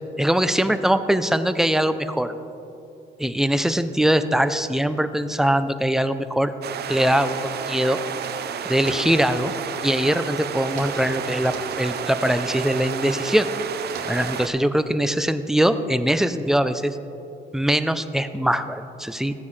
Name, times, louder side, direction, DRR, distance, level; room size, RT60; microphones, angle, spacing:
voice 1, 0.2-2.3 3.2-6.5 6.9-8.0 8.7-9.5 9.8-13.5 14.1-17.0 17.5-19.3, equal, ahead, 11 dB, 0.4 m, -22 dB
sound 1, 6.6-14.5, right 8 dB, 55° right, 0.6 m, -31 dB
sound 2, 8.7-9.3 10.6-11.1 11.3-12.0 13.8-14.4, right 4 dB, 75° right, 1.6 m, -41 dB
14.5 x 9.4 x 3.2 m, 2.8 s
cardioid pair, 90°, 20 cm